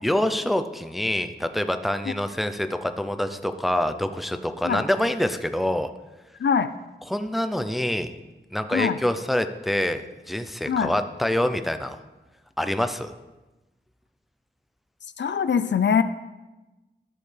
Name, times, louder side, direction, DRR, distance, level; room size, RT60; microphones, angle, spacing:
voice 1, 0.0-5.9 7.1-8.1 8.5-12.0 12.6-13.1, left 1 dB, ahead, 9 dB, 0.5 m, -26 dB
voice 2, 6.4-6.7 8.7-9.0 10.7-10.9 15.2-16.0, left 7 dB, 70° left, 12 dB, 0.4 m, -22 dB
12.0 x 6.5 x 3.3 m, 1.1 s
wide cardioid pair, 85°, 19 cm